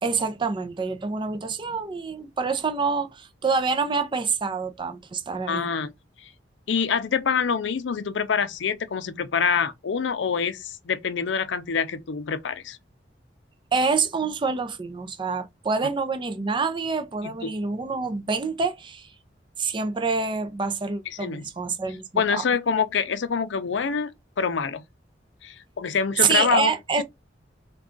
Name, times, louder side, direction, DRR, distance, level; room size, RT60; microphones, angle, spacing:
voice 1, 0.0-5.7 13.7-19.1 19.6-22.4 26.2-27.0, right 4 dB, 25° right, 0.4 m, -26 dB
voice 2, 5.5-5.9 6.2-6.3 6.7-12.8 17.4-17.5 21.1-21.4 22.2-24.1 24.4-24.8 25.4-26.7 27.0-27.1, left 6 dB, 75° left, 0.5 m, -25 dB
3.6 x 2.3 x 3.7 m
head